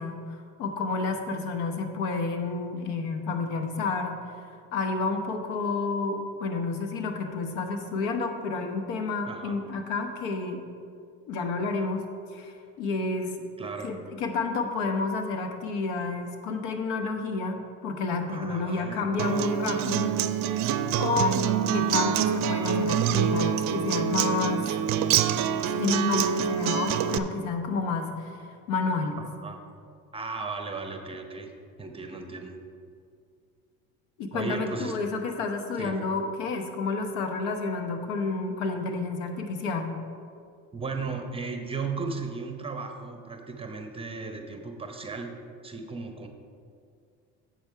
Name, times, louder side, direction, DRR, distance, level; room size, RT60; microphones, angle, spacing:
voice 1, 0.0-4.1 4.7-10.6 11.3-12.0 12.3-13.4 13.8-21.4 21.7-24.7 25.6-28.4 28.7-29.2 34.2-40.0, left 4 dB, 85° left, 6 dB, 1.0 m, -30 dB
voice 2, 13.6-13.9 18.3-19.0 29.2-29.6 30.1-31.5 31.8-32.5 34.3-35.0 35.8-36.0 40.7-45.3 45.6-46.3, right 4 dB, 15° right, 5 dB, 0.8 m, -35 dB
Acoustic guitar, 19.2-27.2, right 9 dB, 55° right, 0.5 m, -26 dB
7.9 x 6.6 x 4.6 m, 2.3 s
supercardioid pair, 100°, 34 cm